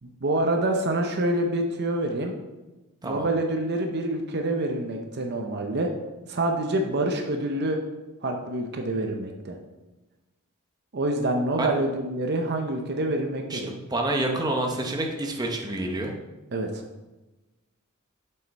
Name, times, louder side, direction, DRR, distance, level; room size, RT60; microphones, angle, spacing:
voice 1, 0.0-2.3 3.0-5.9 6.3-7.8 8.2-9.6 10.9-13.7 16.5-16.8, right 1 dB, 50° right, 3 dB, 0.7 m, -26 dB
voice 2, 13.5-16.1, right 1 dB, 20° right, 1 dB, 0.9 m, -28 dB
7.6 x 5.6 x 4.1 m, 1.1 s
head